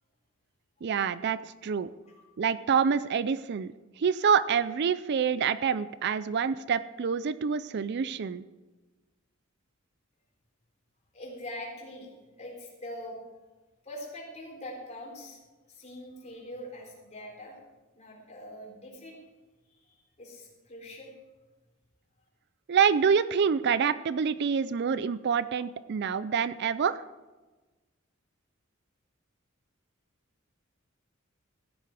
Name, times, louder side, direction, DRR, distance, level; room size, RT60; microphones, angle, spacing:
voice 1, 0.8-1.9 2.4-8.4 22.7-27.0, right 6 dB, 55° right, 15 dB, 0.4 m, -27 dB
voice 2, 11.1-13.2 13.8-15.4 15.7-17.5 18.0-19.2 19.8-21.1, left 1 dB, 35° left, -1 dB, 4.2 m, -43 dB
15.0 x 10.5 x 4.7 m, 1.2 s
head